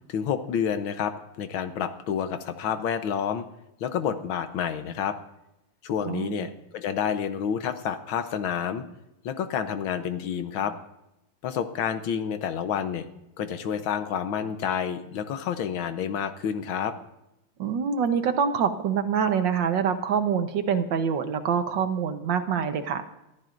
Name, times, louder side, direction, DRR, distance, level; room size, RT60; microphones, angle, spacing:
voice 1, 0.1-3.4 3.8-5.2 5.8-8.8 9.3-10.7 11.4-13.1 13.4-16.9, left 8 dB, 75° left, 9 dB, 1.6 m, -29 dB
voice 2, 6.0-6.5 17.6-23.0, right 7 dB, 65° right, 8 dB, 1.6 m, -25 dB
23.5 x 14.0 x 2.6 m, 0.88 s
omnidirectional pair, 2.3 m